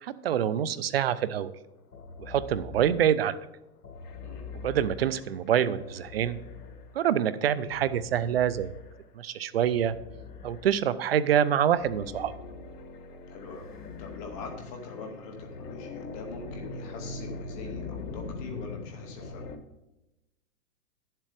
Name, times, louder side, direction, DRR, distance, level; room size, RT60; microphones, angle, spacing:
voice 1, 0.0-1.5 2.2-3.4 4.5-6.4 6.9-8.7 9.2-9.9 10.4-12.3, right 9 dB, 40° right, 15 dB, 0.4 m, -26 dB
sound 1, 1.9-3.3 3.8-7.1 7.7-9.1 9.6-11.0 11.5-19.6, left 3 dB, 85° left, 1.5 m, -42 dB
voice 2, 4.2-4.5 13.3-19.5, left 4 dB, 15° left, 3 dB, 0.8 m, -43 dB
9.7 x 7.5 x 4.9 m, 0.97 s
hypercardioid pair, 160°, 46 cm